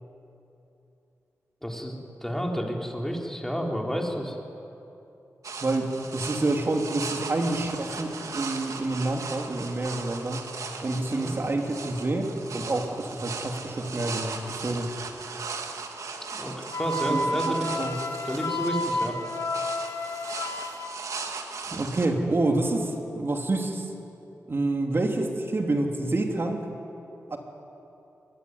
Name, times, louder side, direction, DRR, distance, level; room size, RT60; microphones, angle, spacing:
voice 1, 1.6-4.4 11.1-11.3 16.3-16.5 16.8-17.7 18.2-19.2, equal, 5° left, 0 dB, 4.2 m, -30 dB
sound 1, 5.4-22.1, right 4 dB, 75° right, 2.1 m, -38 dB
voice 2, 5.6-10.4 10.8-14.9 17.1-18.0 21.7-23.9 24.5-26.7 27.3-27.4, right 2 dB, 45° right, 2 dB, 3.4 m, -28 dB
Wind instrument woodwind instrument, 16.7-20.9, left 1 dB, 70° left, 2.2 m, -31 dB
24.5 x 21.5 x 9.8 m, 2.9 s
cardioid pair, 75°, 6 cm